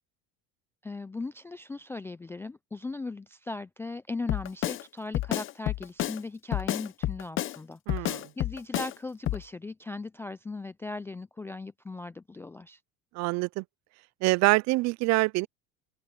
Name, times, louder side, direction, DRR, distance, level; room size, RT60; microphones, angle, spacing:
voice 1, 0.8-12.8, left 3 dB, 10° left, 0.3 m, -38 dB
Drum kit, 4.3-4.8 5.1-6.2 6.5-7.6 7.9-8.9 9.3-9.4, left 14 dB, 40° left, 0.7 m, -30 dB
voice 2, 7.9-8.3 13.1-13.6 14.2-15.5, right 23 dB, 60° right, 0.5 m, -25 dB
open air
cardioid pair, 140°, 31 cm